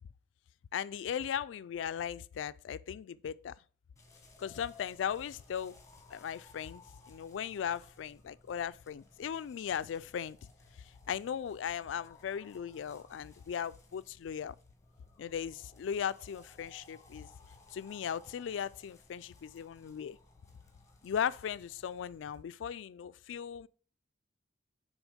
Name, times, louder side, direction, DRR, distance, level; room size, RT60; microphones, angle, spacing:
voice 1, 0.7-3.5 4.4-5.8 6.1-6.8 7.1-10.4 11.1-14.5 15.2-17.3 17.7-20.2 21.0-23.7, left 8 dB, 85° left, 0.3 m, -37 dB
sound 1, 4.0-22.4, left 2 dB, 15° left, 1.1 m, -60 dB
6.2 x 3.8 x 5.0 m
head